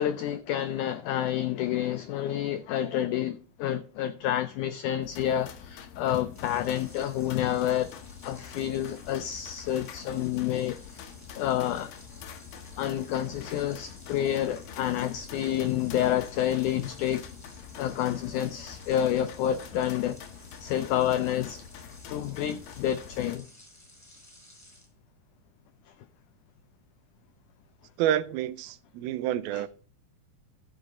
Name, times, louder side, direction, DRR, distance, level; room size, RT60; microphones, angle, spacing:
voice 1, 0.0-7.9 8.2-11.1 11.4-11.9 12.8-17.2 17.8-20.2 20.6-21.6 22.1-23.5 29.5-29.6, left 11 dB, 85° left, 1.7 m, -29 dB
sound 1, 5.0-23.4, left 7 dB, 70° left, 2.5 m, -46 dB
sound 2, 6.3-24.9, left 1 dB, 5° left, 4.2 m, -54 dB
voice 2, 28.0-29.7, right 11 dB, 85° right, 2.5 m, -28 dB
14.5 x 6.5 x 3.7 m
omnidirectional pair, 4.3 m